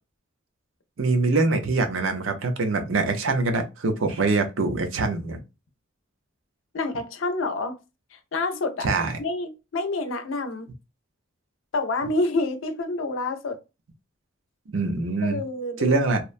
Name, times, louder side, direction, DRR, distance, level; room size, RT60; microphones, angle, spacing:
voice 1, 1.0-5.4 8.8-9.1 14.7-15.4 15.8-16.2, right 3 dB, 80° right, 0.6 m, -24 dB
voice 2, 6.7-7.8 8.1-8.9 9.2-10.7 11.7-13.6 15.2-16.2, left 2 dB, 75° left, 0.5 m, -28 dB
2.9 x 2.1 x 2.4 m
head